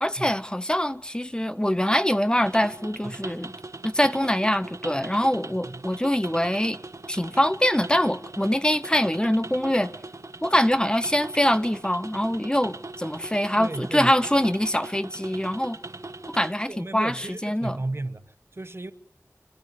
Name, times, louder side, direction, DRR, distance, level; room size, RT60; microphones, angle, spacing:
voice 1, 0.0-3.5 3.8-6.8 7.1-9.9 10.4-15.8 16.3-17.8, equal, 15° left, 0.9 m, -24 dB
sound 1, 2.4-16.5, right 2 dB, 70° right, 1.4 m, -40 dB
voice 2, 13.6-14.2 16.7-18.9, right 2 dB, 50° right, 1.1 m, -34 dB
26.5 x 12.0 x 9.5 m
wide cardioid pair, 45°, 6 cm